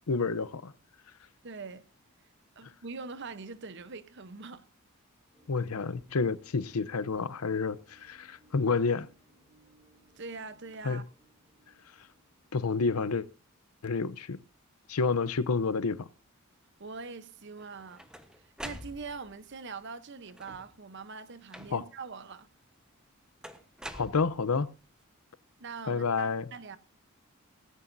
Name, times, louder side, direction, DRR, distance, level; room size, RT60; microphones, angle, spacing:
voice 1, 0.1-0.7 5.5-9.1 10.8-11.0 12.5-13.3 13.8-14.4 14.9-16.1 21.7-21.8 23.9-24.7 25.9-26.5, left 4 dB, 90° left, 0.7 m, -29 dB
voice 2, 1.4-1.8 2.6-4.7 10.2-11.0 16.8-18.0 18.4-22.5 25.6-26.8, right 4 dB, 55° right, 0.9 m, -43 dB
sound 1, 5.3-13.7, right 1 dB, 20° right, 5.5 m, -65 dB
sound 2, 17.6-19.4 20.3-20.8 21.5-22.1 23.4-24.7, equal, 5° right, 1.0 m, -45 dB
18.0 x 15.5 x 2.7 m
head